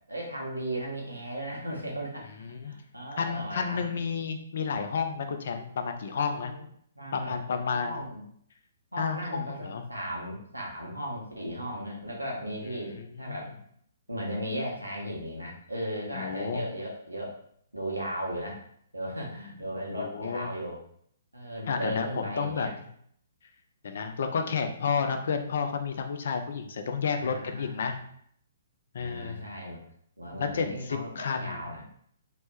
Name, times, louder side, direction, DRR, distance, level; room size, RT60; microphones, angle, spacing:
voice 1, 0.1-2.4 2.6-4.0 6.3-6.6 6.9-7.3 7.7-8.2 8.9-13.5 14.1-17.3 17.7-18.6 18.9-20.8 21.3-22.7 27.1-27.9 29.0-29.8 30.2-31.8, equal, 90° right, -2 dB, 0.8 m, -36 dB
voice 2, 2.4-2.7 3.2-6.5 7.1-8.0 9.0-9.8 13.0-13.5 16.1-16.7 19.9-20.5 21.7-22.7 23.8-28.0 28.9-29.5 30.3-31.7, left 5 dB, 55° left, 6 dB, 0.3 m, -31 dB
3.0 x 2.1 x 3.0 m, 0.65 s
figure-of-eight pair, 125°, 0 cm